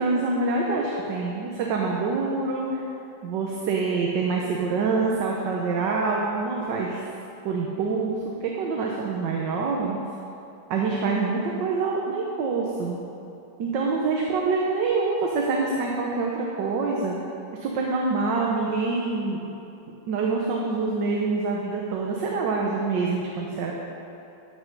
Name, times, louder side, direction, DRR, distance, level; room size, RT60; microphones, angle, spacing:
voice 1, 0.0-2.8 3.2-7.0 7.4-10.0 10.7-13.0 13.6-17.2 17.6-19.4 19.9-23.7, right 4 dB, 75° right, -1 dB, 1.5 m, -26 dB
13.5 x 5.6 x 5.3 m, 2.9 s
omnidirectional pair, 2.0 m